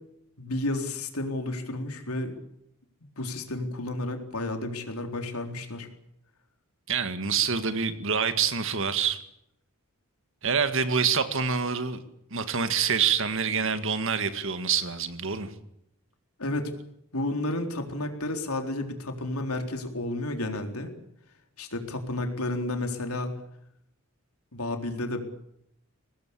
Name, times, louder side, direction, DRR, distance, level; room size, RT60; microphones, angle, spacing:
voice 1, 0.4-2.3 3.2-5.9 16.4-16.7 17.1-20.9 21.6-23.4 24.5-25.2, left 2 dB, 85° left, 5 dB, 4.0 m, -31 dB
voice 2, 6.9-9.2 10.4-12.0 12.3-15.5, right 6 dB, 60° right, 10 dB, 2.0 m, -26 dB
23.5 x 19.0 x 8.6 m, 0.76 s
head